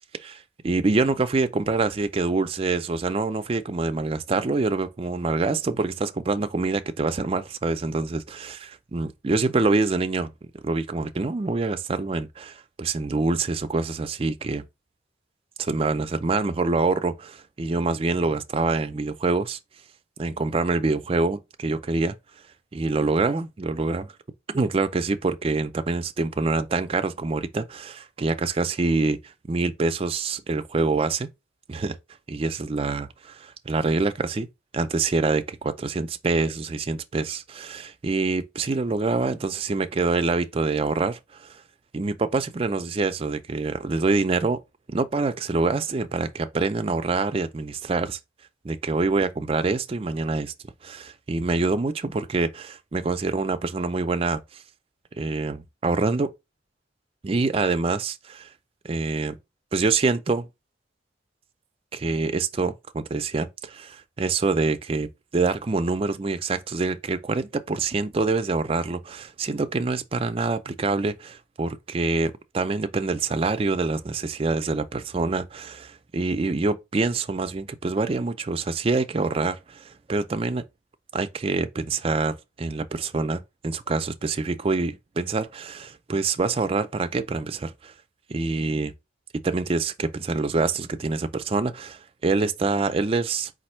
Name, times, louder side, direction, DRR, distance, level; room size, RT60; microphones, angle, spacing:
voice 1, 0.2-10.3 10.6-14.6 15.6-19.6 20.2-22.1 22.7-24.1 24.5-29.2 29.5-31.3 31.7-32.0 32.3-34.5 34.7-41.6 41.9-44.6 44.9-48.2 48.6-50.5 50.8-54.4 55.2-56.3 57.2-58.5 58.8-59.3 59.7-60.5 61.9-80.6 81.1-87.9 88.3-88.9 89.4-93.5, right 3 dB, 30° right, 0.4 m, -26 dB
4.2 x 2.5 x 4.3 m
head